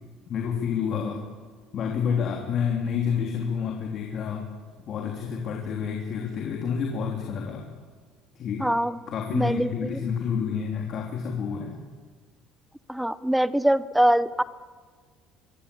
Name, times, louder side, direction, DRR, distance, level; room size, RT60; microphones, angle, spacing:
voice 1, 0.3-1.2 1.7-4.4 4.9-7.7 8.3-8.7 9.1-11.7, left 7 dB, 40° left, 1 dB, 3.3 m, -29 dB
voice 2, 8.6-9.0 9.3-10.0 12.9-14.4, right 1 dB, ahead, 15 dB, 0.7 m, -23 dB
24.5 x 22.5 x 8.6 m, 1.5 s
cardioid pair, 165°, 0 cm